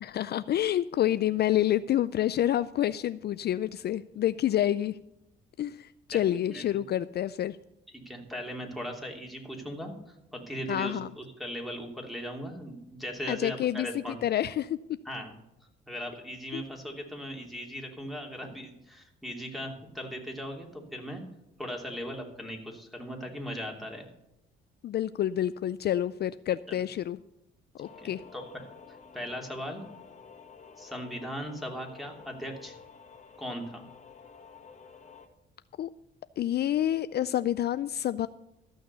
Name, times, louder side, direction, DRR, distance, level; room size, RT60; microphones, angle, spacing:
voice 1, 0.0-5.0 5.6-7.6 10.7-11.1 13.3-13.9 14.2-15.0 16.5-16.6 24.8-27.2 27.8-28.2 35.8-35.9 36.4-38.3, left 12 dB, 55° left, 14 dB, 0.4 m, -28 dB
voice 2, 6.1-6.8 7.9-9.9 10.3-14.2 15.0-15.3 15.9-21.2 21.6-24.0 27.8-28.6 29.1-29.8 30.8-32.7 33.4-33.8, equal, ahead, 2 dB, 2.9 m, -38 dB
sound 1, 27.8-35.3, left 6 dB, 35° left, 2.0 m, -51 dB
14.0 x 6.4 x 6.7 m, 0.90 s
cardioid pair, 90°, 20 cm